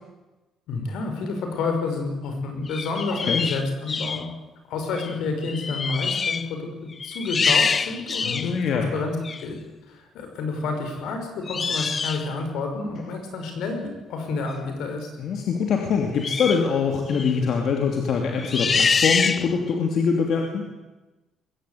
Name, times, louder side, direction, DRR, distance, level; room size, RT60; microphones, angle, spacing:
voice 1, 0.7-4.3 4.7-6.7 7.0-9.6 9.9-15.1, left 3 dB, 80° left, 4 dB, 5.7 m, -29 dB
sound 1, 2.7-4.3 4.9-5.2 5.4-6.5 6.9-8.6 9.2-9.4 11.5-12.3 16.2-16.7 17.1-17.4 18.4-19.7, left 5 dB, 30° left, 0.7 m, -25 dB
voice 2, 3.1-3.4 8.2-8.9 15.2-20.6, left 6 dB, 55° left, 2 dB, 2.9 m, -24 dB
22.0 x 15.5 x 9.4 m, 1.1 s
cardioid pair, 135°, 0 cm